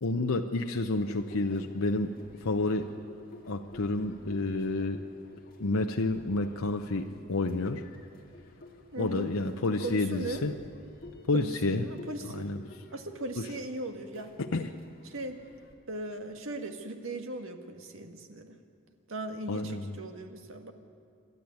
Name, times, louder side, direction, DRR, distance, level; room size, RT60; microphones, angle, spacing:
voice 1, 0.0-2.1 2.4-2.9 3.5-5.0 5.6-7.8 9.0-10.5 11.3-11.9 12.3-12.6 13.4-13.5 14.4-14.7 19.5-19.9, left 2 dB, 85° left, 4 dB, 0.8 m, -30 dB
sound 1, 1.0-15.7, left 1 dB, 45° left, 2.2 m, -53 dB
voice 2, 8.9-9.3 9.8-10.4 11.3-12.5 12.9-14.3 15.1-15.4 15.9-18.6 19.1-20.7, right 2 dB, 75° right, 6 dB, 1.8 m, -38 dB
28.0 x 12.0 x 9.5 m, 2.5 s
head